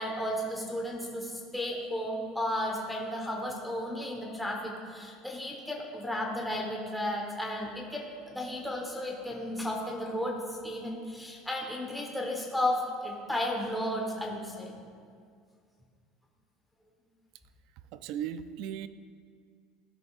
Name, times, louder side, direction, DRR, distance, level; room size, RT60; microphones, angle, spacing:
voice 1, 0.0-14.7, left 1 dB, 5° left, -2 dB, 1.1 m, -34 dB
voice 2, 17.9-18.9, right 9 dB, 65° right, 13 dB, 0.3 m, -36 dB
13.5 x 5.2 x 2.4 m, 2.2 s
supercardioid pair, 130°, 0 cm